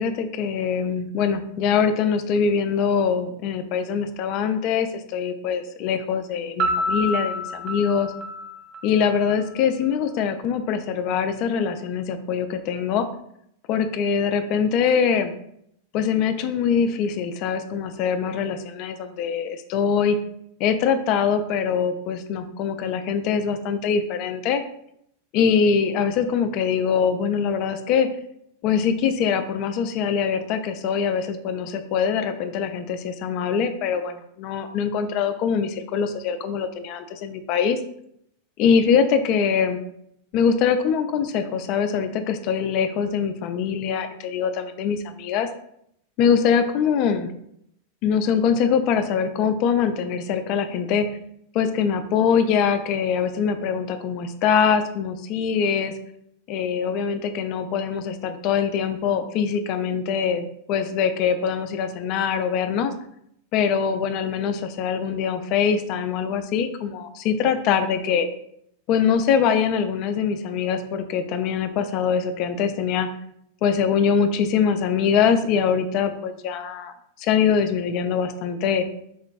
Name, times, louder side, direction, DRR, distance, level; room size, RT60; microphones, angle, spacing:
voice 1, 0.0-8.1 8.8-13.1 13.7-15.3 15.9-20.2 20.6-24.6 25.3-28.1 28.6-37.8 38.6-39.8 40.3-45.5 46.2-47.3 48.0-51.1 51.5-55.9 56.5-62.9 63.5-68.3 68.9-73.1 73.6-76.9 77.2-78.9, left 7 dB, 40° left, 9 dB, 0.3 m, -23 dB
Piano, 6.6-9.4, equal, 35° right, 0.4 m, -27 dB
4.2 x 2.9 x 2.4 m, 0.74 s
figure-of-eight pair, 90°, 0 cm